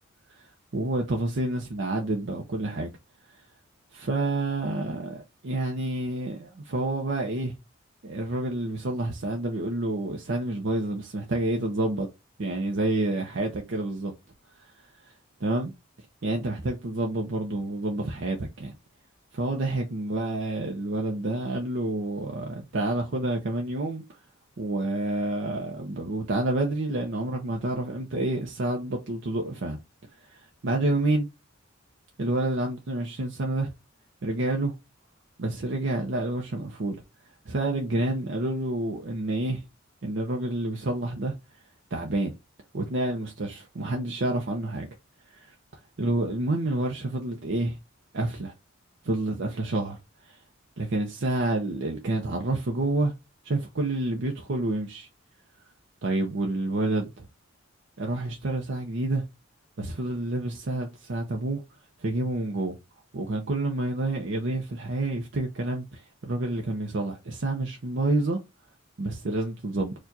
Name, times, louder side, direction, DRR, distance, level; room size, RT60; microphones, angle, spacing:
voice 1, 0.3-2.9 3.9-7.5 8.0-12.1 12.4-14.1 14.6-14.7 15.4-15.7 16.2-18.7 19.3-24.0 24.6-29.8 30.3-31.3 32.2-33.7 34.2-34.7 35.4-37.0 37.5-39.6 40.0-41.3 41.9-42.3 42.7-44.9 45.3-45.5 46.0-47.8 48.1-48.5 49.0-50.0 50.2-50.4 50.8-53.1 53.4-55.1 56.0-57.3 58.0-59.2 59.8-61.6 62.0-62.8 63.1-68.4 69.0-69.9, right 2 dB, 60° right, 0.6 m, -28 dB
4.5 x 2.4 x 2.6 m
head